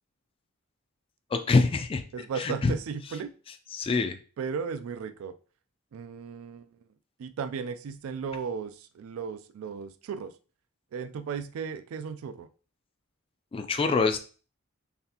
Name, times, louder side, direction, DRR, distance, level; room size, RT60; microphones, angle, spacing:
voice 1, 1.3-2.0 2.4-2.7 3.7-4.2 13.5-14.2, left 4 dB, 25° left, 7 dB, 0.3 m, -25 dB
voice 2, 2.1-3.3 4.4-5.3 5.9-6.9 7.2-10.3 10.9-12.5, right 6 dB, 70° right, 10 dB, 0.3 m, -35 dB
4.0 x 3.4 x 2.8 m, 0.37 s
head